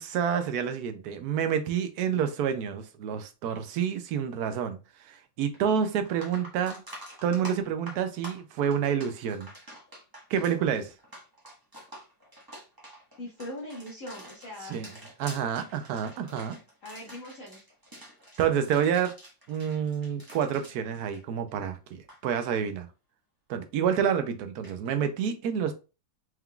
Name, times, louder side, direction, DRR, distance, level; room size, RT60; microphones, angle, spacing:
voice 1, 0.0-4.8 5.0-6.8 7.2-9.5 10.3-10.9 14.7-14.9 15.2-16.5 18.4-19.1 19.5-22.9 23.5-25.7, right 8 dB, 70° right, 8 dB, 0.9 m, -28 dB
sound 1, 5.5-5.6 6.0-21.7 21.9-22.2 24.6-24.7, equal, 15° right, 0.8 m, -47 dB
voice 2, 13.2-14.8 16.8-17.6, left 1 dB, 45° left, -4 dB, 1.4 m, -41 dB
4.5 x 3.7 x 2.3 m, 0.31 s
omnidirectional pair, 2.2 m